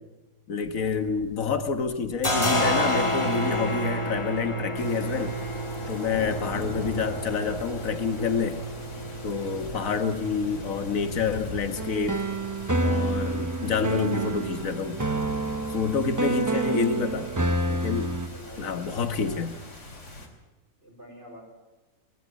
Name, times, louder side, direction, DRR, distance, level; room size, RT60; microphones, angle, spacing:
voice 1, 0.5-5.4 5.9-8.6 9.2-12.2 12.8-15.0 15.7-17.3 17.7-18.1 18.6-19.5, left 5 dB, 75° left, 9 dB, 1.8 m, -28 dB
sound 1, 0.6-1.6 1.8-19.3, equal, 20° left, 2.0 m, -33 dB
sound 2, 4.7-20.3, left 1 dB, 60° left, 3.3 m, -42 dB
sound 3, 11.8-18.3, right 2 dB, 15° right, 0.8 m, -28 dB
voice 2, 18.2-19.5 20.8-21.4, equal, 55° right, -4 dB, 5.1 m, -47 dB
20.5 x 14.5 x 9.4 m, 1.1 s
omnidirectional pair, 1.4 m